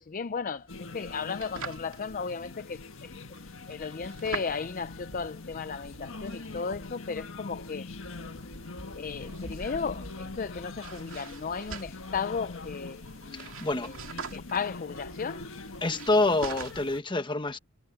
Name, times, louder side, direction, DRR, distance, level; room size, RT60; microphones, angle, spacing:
voice 1, 0.0-3.1 3.7-7.9 9.0-13.0 13.3-13.5 13.8-13.9 14.3-15.5, left 5 dB, 40° left, 0.5 m, -35 dB
sound 1, 0.6-17.0, right 4 dB, 75° right, 2.4 m, -45 dB
sound 2, 0.7-17.0, left 3 dB, 75° left, 1.6 m, -43 dB
voice 2, 13.3-13.9 15.8-17.6, left 2 dB, 25° left, 1.2 m, -27 dB
head